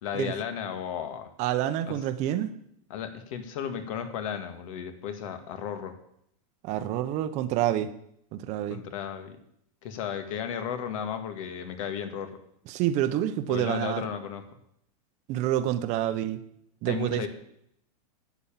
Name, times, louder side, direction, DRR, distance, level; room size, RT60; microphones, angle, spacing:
voice 1, 0.0-1.3 1.9-2.0 2.9-5.9 8.7-9.4 9.8-12.3 13.5-14.4 16.9-17.3, left 8 dB, 60° left, 8 dB, 1.7 m, -34 dB
voice 2, 1.4-2.5 6.6-7.9 8.3-8.8 12.7-14.0 15.3-16.4 16.8-17.3, right 12 dB, 40° right, 10 dB, 0.8 m, -28 dB
9.9 x 7.3 x 7.3 m, 0.73 s
supercardioid pair, 150°, 19 cm